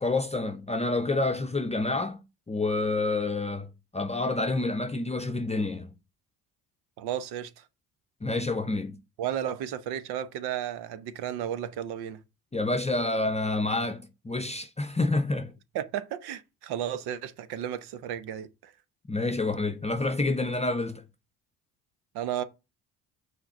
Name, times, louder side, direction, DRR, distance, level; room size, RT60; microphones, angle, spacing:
voice 1, 0.0-2.2 2.5-5.9 8.2-9.0 12.5-15.5 19.1-21.0, left 2 dB, 15° left, 0.7 m, -28 dB
voice 2, 7.0-7.6 9.2-12.2 15.7-18.7 22.1-22.4, right 10 dB, 70° right, 0.9 m, -33 dB
6.0 x 3.8 x 5.2 m
supercardioid pair, 60°, 40 cm